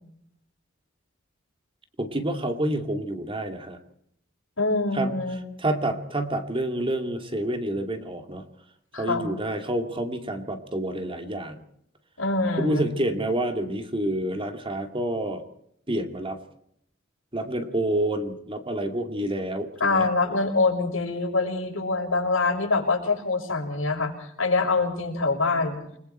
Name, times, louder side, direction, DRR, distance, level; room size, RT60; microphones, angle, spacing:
voice 1, 2.0-3.8 4.9-5.1 5.6-8.4 9.0-11.6 12.6-15.4 15.9-16.4 17.3-20.1, right 1 dB, 25° right, 5 dB, 2.5 m, -28 dB
voice 2, 4.6-5.4 8.9-9.3 12.2-12.9 19.8-25.8, left 3 dB, 85° left, 0 dB, 6.6 m, -25 dB
28.5 x 21.0 x 4.5 m, 0.72 s
head